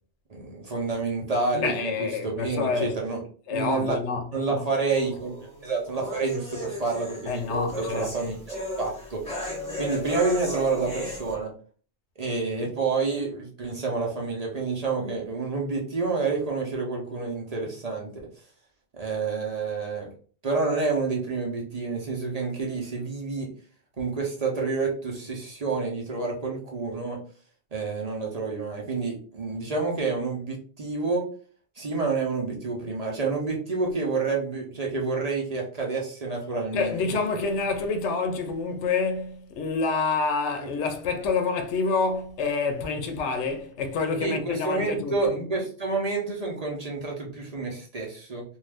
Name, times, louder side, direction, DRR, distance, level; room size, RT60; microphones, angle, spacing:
voice 1, 0.3-3.2 3.5-4.0 4.3-5.3 5.6-8.4 8.8-9.2 9.8-11.5 12.2-18.1 18.9-20.1 20.4-23.5 24.0-27.2 27.7-31.2 31.8-37.1 40.6-40.7 44.2-48.4, right 4 dB, 40° right, 0.7 m, -28 dB
voice 2, 1.5-3.0 3.5-4.6 7.3-8.1 36.7-45.4, left 4 dB, 85° left, 0.9 m, -27 dB
sound 1, 4.9-11.3, left 1 dB, 5° left, 1.0 m, -35 dB
2.6 x 2.3 x 3.3 m
omnidirectional pair, 1.2 m